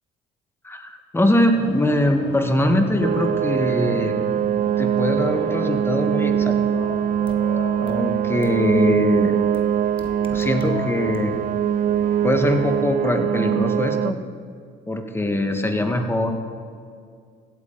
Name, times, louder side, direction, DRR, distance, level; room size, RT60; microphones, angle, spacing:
voice 1, 0.6-4.2 4.8-6.8 7.8-9.4 10.3-11.4 12.2-14.2 14.9-16.3, left 1 dB, 15° left, 5 dB, 1.4 m, -22 dB
sound 1, 1.5-12.8, left 4 dB, 70° left, 1.5 m, -37 dB
sound 2, 3.0-14.1, right 10 dB, 45° right, 0.4 m, -22 dB
sound 3, 7.3-7.4 7.9-8.0 8.4-8.5 9.5-9.6 10.0-10.7 11.1-11.2, left 4 dB, 30° left, 1.3 m, -40 dB
16.5 x 8.4 x 4.0 m, 2.2 s
supercardioid pair, 75°, 18 cm